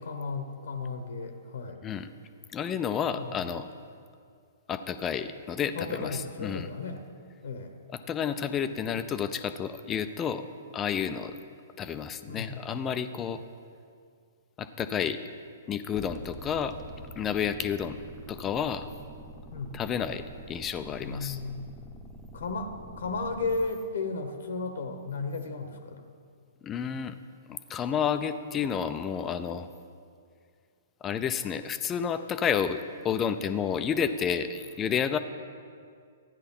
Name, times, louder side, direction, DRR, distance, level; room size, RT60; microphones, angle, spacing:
voice 1, 0.0-1.8 3.2-3.6 5.7-7.0 7.4-7.8 8.9-9.0 12.3-12.9 19.5-19.8 21.0-21.6 22.3-26.0, left 3 dB, 70° left, 7 dB, 1.2 m, -34 dB
voice 2, 2.5-3.7 4.7-6.7 7.9-10.4 10.7-11.4 11.8-13.4 14.6-15.2 15.7-16.8 17.2-18.0 18.3-18.9 19.7-21.4 26.6-27.2 27.5-29.7 31.0-35.2, left 7 dB, 20° left, 10 dB, 0.6 m, -30 dB
sound 1, 15.9-23.7, equal, 5° left, 1.1 m, -46 dB
13.5 x 10.0 x 5.4 m, 2.2 s
figure-of-eight pair, 120°, 0 cm